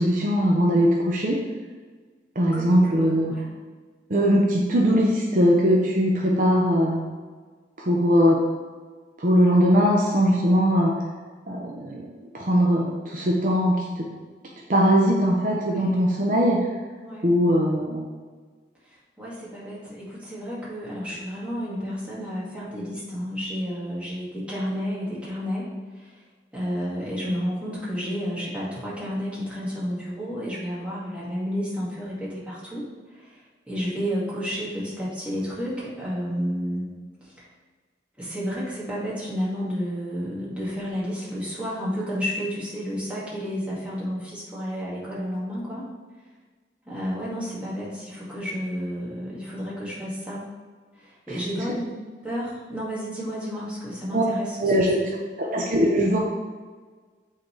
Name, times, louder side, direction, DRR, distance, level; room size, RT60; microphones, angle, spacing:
voice 1, 0.0-1.4 2.4-3.3 4.1-7.0 7.8-8.4 9.2-11.0 11.5-12.1 12.3-14.1 14.7-16.6 17.2-18.0 51.3-51.4 54.1-54.2 54.6-55.0 55.4-56.2, equal, 45° right, -1 dB, 0.6 m, -20 dB
voice 2, 2.5-3.5 15.5-16.2 17.0-17.3 19.2-25.7 26.0-26.1 26.5-32.9 33.2-33.4 33.7-36.9 38.2-45.8 46.9-50.4 51.0-51.9 52.2-54.7 55.0-55.1, equal, 5° right, -8 dB, 1.8 m, -31 dB
8.7 x 3.9 x 3.2 m, 1.5 s
head